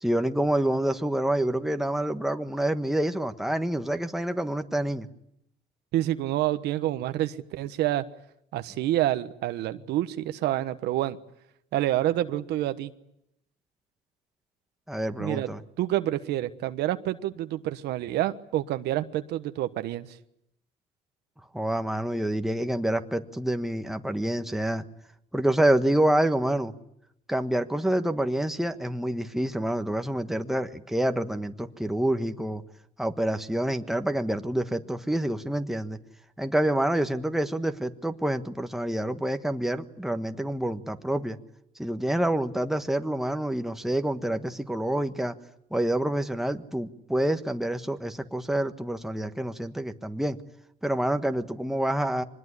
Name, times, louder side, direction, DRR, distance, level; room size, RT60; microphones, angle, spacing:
voice 1, 0.0-5.1 14.9-15.6 21.5-24.8 25.3-26.7 27.3-32.6 33.0-36.0 36.4-41.4 41.8-45.3 45.7-50.4 50.8-52.2, right 1 dB, ahead, 7 dB, 1.4 m, -27 dB
voice 2, 5.9-8.0 8.5-11.2 11.7-12.9 15.2-15.5 15.8-20.2, right 14 dB, 80° right, 10 dB, 1.2 m, -28 dB
24.5 x 20.5 x 9.8 m, 0.80 s
cardioid pair, 110°, 17 cm